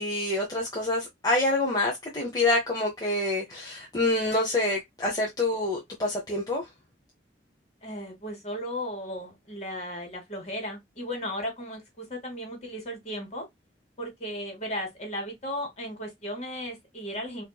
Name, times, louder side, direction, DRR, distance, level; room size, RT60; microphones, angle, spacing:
voice 1, 0.0-6.6, left 2 dB, 20° left, 0.8 m, -27 dB
voice 2, 7.8-13.4 14.0-17.4, equal, 40° left, 1.9 m, -35 dB
4.3 x 2.7 x 2.3 m
head